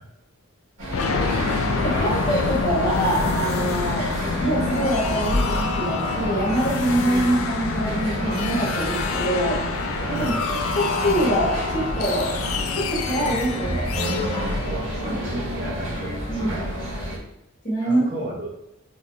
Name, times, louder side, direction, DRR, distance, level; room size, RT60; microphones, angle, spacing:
sound 1, 0.8-17.2, equal, 80° right, 1.8 m, -29 dB
sound 2, 0.9-15.6, left 4 dB, 75° left, 0.4 m, -28 dB
voice 1, 1.8-4.1 4.4-9.6 10.1-10.3 10.7-12.3 12.7-13.9 15.0-15.3 16.3-16.6 17.6-18.3, right 1 dB, 35° left, -6 dB, 1.7 m, -24 dB
voice 2, 10.0-10.4 14.5-17.1 17.8-18.5, right 1 dB, 40° right, -8 dB, 1.1 m, -35 dB
4.8 x 4.1 x 2.7 m, 0.85 s
head